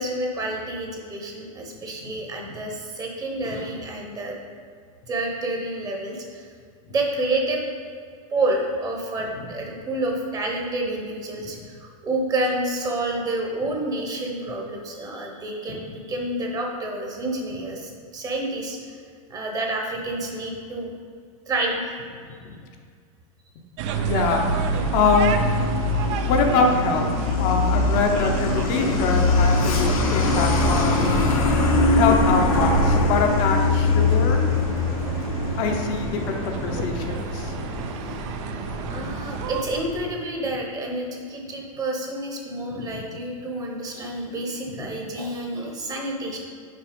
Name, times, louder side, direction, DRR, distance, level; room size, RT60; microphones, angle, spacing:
voice 1, 0.0-4.3 5.1-6.5 6.9-7.6 8.3-19.0 19.3-20.9 21.5-21.8 38.9-46.4, right 2 dB, 20° right, 0 dB, 1.0 m, -29 dB
sound 1, 23.8-39.6, right 7 dB, 55° right, 0.5 m, -33 dB
Truck, 23.9-40.1, left 2 dB, 75° left, 1.1 m, -23 dB
voice 2, 24.1-24.6 24.9-25.3 26.2-27.1 27.4-31.0 31.9-34.5 35.6-37.7 42.7-43.0 44.7-44.9, left 4 dB, 45° left, 2 dB, 0.8 m, -24 dB
5.8 x 4.2 x 5.2 m, 2.1 s
supercardioid pair, 135°, 18 cm